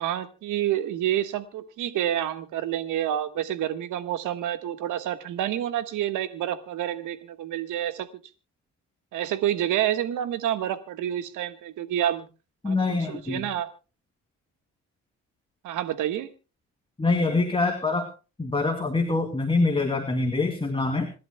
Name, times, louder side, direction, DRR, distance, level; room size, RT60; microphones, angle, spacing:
voice 1, 0.0-8.1 9.1-12.3 12.6-13.7 15.6-16.3, right 11 dB, 85° right, 10 dB, 1.4 m, -28 dB
voice 2, 12.6-13.5 17.0-18.1 18.4-21.1, left 3 dB, 15° left, 4 dB, 2.6 m, -25 dB
27.0 x 12.0 x 2.2 m, 0.33 s
cardioid pair, 90°, 30 cm